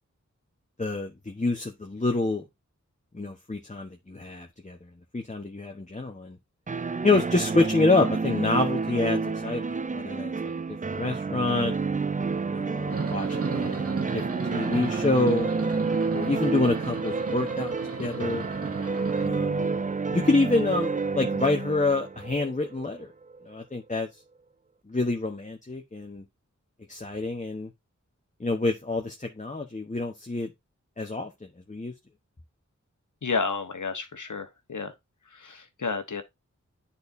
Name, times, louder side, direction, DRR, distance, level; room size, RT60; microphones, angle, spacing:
voice 1, 0.8-2.4 3.1-4.8 5.1-6.4 7.0-10.5 10.9-11.7 12.5-15.5 16.1-18.4 19.2-19.7 20.1-23.1 23.5-24.1 24.9-26.2 26.9-27.7 28.4-30.5 31.0-31.3 31.7-31.9, left 3 dB, 25° left, 1.0 m, -27 dB
sound 1, 6.7-23.4, right 4 dB, 25° right, 0.4 m, -29 dB
sound 2, 12.9-19.3, right 4 dB, 50° right, 1.0 m, -35 dB
voice 2, 33.2-34.9 35.3-36.2, left 4 dB, 80° left, 1.1 m, -31 dB
10.5 x 4.2 x 2.6 m
wide cardioid pair, 55°, 30 cm